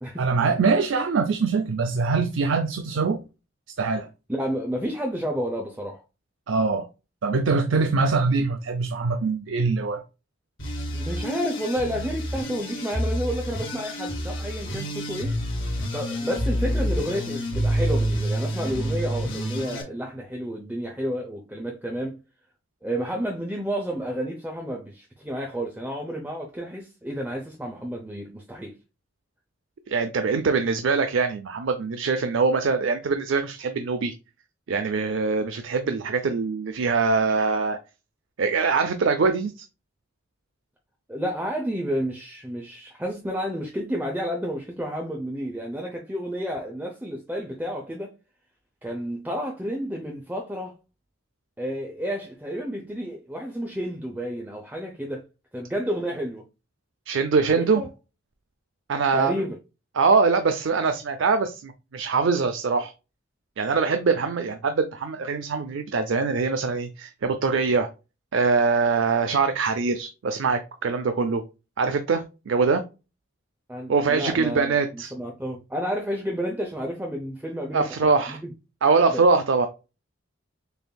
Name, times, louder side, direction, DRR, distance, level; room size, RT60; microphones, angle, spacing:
voice 1, 0.2-3.2 3.8-4.1 6.5-6.9 7.2-10.0 29.9-34.1 34.7-37.8 38.4-39.6 57.1-57.8 58.9-59.4 59.9-62.9 63.6-67.9 68.3-71.4 71.8-72.8 73.9-75.1 77.7-78.4 78.8-79.7, right 4 dB, 70° right, 0.5 m, -23 dB
voice 2, 4.3-6.0 11.0-15.4 15.9-22.2 22.8-28.7 41.1-48.1 48.8-50.7 51.6-55.2 55.5-56.4 57.5-57.9 59.1-59.6 73.7-78.5 79.1-79.2, equal, 10° right, 0.6 m, -31 dB
sound 1, 10.6-19.8, equal, 80° left, 2.0 m, -28 dB
6.7 x 2.6 x 2.2 m
head